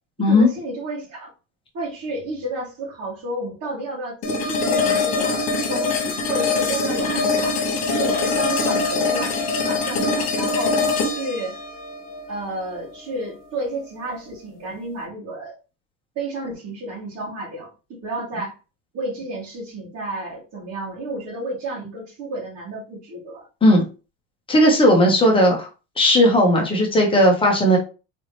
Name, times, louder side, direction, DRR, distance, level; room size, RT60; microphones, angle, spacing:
voice 1, 0.2-1.3 1.7-7.6 7.9-10.8 11.1-11.6 12.3-15.6 16.1-18.6 18.9-23.5, right 2 dB, 45° right, -9 dB, 2.8 m, -31 dB
sound 1, 4.2-13.3, left 4 dB, 45° left, 1.7 m, -23 dB
voice 2, 24.5-25.7 26.0-27.8, left 1 dB, 15° left, 0 dB, 1.2 m, -16 dB
4.2 x 3.6 x 3.3 m, 0.32 s
cardioid pair, 155°, 35 cm